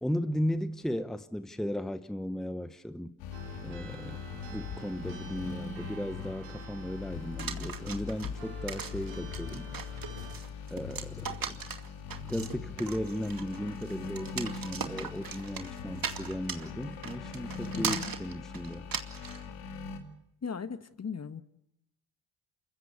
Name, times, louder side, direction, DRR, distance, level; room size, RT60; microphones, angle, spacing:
voice 1, 0.0-3.2 3.6-4.2 4.5-9.7 10.7-11.6 12.2-18.9, equal, ahead, 1.1 m, -36 dB
sound 1, 3.2-20.0, left 6 dB, 80° left, 2.5 m, -41 dB
sound 2, 3.3-10.4, right 8 dB, 90° right, 4.7 m, -50 dB
sound 3, 7.4-19.4, right 6 dB, 40° right, 2.4 m, -39 dB
voice 2, 17.7-18.1 20.4-21.4, left 6 dB, 30° left, 1.4 m, -38 dB
28.0 x 15.0 x 8.2 m
hypercardioid pair, 55°, 50 cm